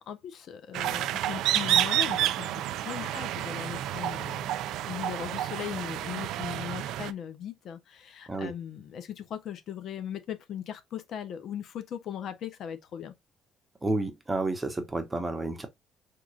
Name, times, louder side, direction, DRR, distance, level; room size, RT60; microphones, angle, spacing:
voice 1, 0.0-4.5 4.9-13.1, left 9 dB, 65° left, 0.6 m, -38 dB
sound 1, 0.7-7.1, right 12 dB, 80° right, 0.3 m, -29 dB
voice 2, 13.8-15.7, right 2 dB, 15° right, 0.9 m, -30 dB
3.7 x 2.9 x 2.7 m
cardioid pair, 110°, 0 cm